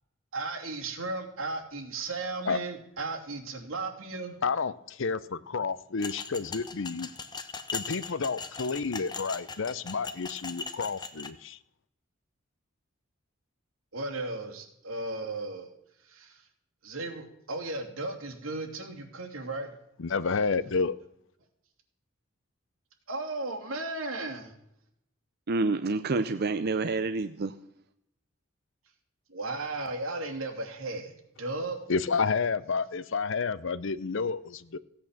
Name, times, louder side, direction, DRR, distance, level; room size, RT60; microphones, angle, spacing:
voice 1, 0.3-4.4 13.9-15.7 16.0-16.4 16.8-19.7 23.1-24.5 29.3-31.8, right 2 dB, 85° right, 2.8 m, -35 dB
voice 2, 4.4-7.1 7.7-11.6 20.0-20.9 31.9-34.8, left 4 dB, 65° left, 0.6 m, -30 dB
sound 1, 6.0-11.3, left 5 dB, 20° left, 0.9 m, -39 dB
voice 3, 25.5-27.5, right 3 dB, 50° right, 0.6 m, -28 dB
16.0 x 8.5 x 7.3 m
head